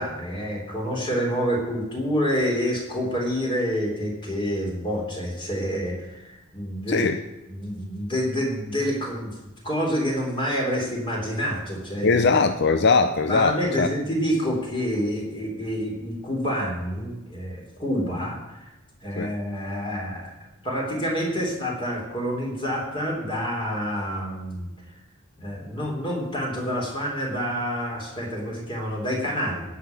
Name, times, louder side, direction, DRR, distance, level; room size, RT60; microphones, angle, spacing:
voice 1, 0.0-7.1 7.5-9.4 9.6-12.3 13.3-18.7 19.0-20.3 20.6-24.7 25.4-29.6, equal, 25° left, -1 dB, 3.6 m, -28 dB
voice 2, 6.9-7.2 12.0-13.9 19.2-19.3, left 4 dB, 55° left, 8 dB, 0.6 m, -20 dB
17.0 x 5.9 x 9.3 m, 1.0 s
head